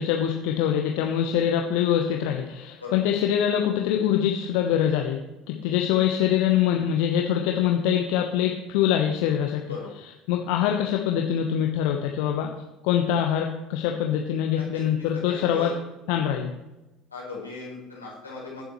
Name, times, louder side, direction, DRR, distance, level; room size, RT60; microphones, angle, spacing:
voice 1, 0.0-5.2 5.5-9.6 10.3-12.5 12.8-15.7 16.1-16.5, left 9 dB, 60° left, 2 dB, 1.1 m, -24 dB
voice 2, 14.5-15.7 17.1-18.7, left 3 dB, 85° left, -5 dB, 4.5 m, -38 dB
22.5 x 7.6 x 3.2 m, 0.99 s
figure-of-eight pair, 60°, 0 cm